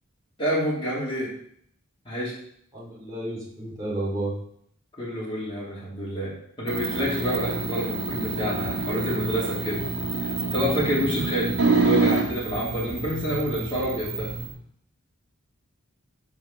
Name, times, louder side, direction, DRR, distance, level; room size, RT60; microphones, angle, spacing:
voice 1, 0.4-1.3 2.0-2.3 5.0-9.8 10.2-14.3, equal, 25° left, -7 dB, 3.0 m, -28 dB
voice 2, 2.7-4.3, right 1 dB, 20° right, -6 dB, 3.3 m, -31 dB
sound 1, 6.7-14.5, right 3 dB, 75° right, 1.6 m, -27 dB
6.7 x 5.7 x 5.8 m, 0.67 s
head